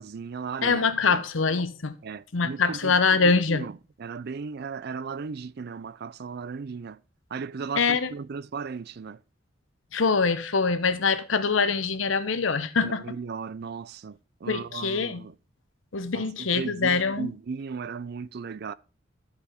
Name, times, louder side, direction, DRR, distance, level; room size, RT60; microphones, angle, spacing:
voice 1, 0.0-1.2 2.0-2.9 3.2-3.7 4.0-7.0 7.3-9.2 12.8-15.3 16.1-16.2 16.5-18.7, right 5 dB, 55° right, 0.4 m, -36 dB
voice 2, 0.6-2.0 2.3-3.7 7.8-8.1 9.9-13.2 14.5-15.3 15.9-17.3, left 4 dB, 85° left, 0.9 m, -24 dB
13.0 x 4.9 x 5.0 m
head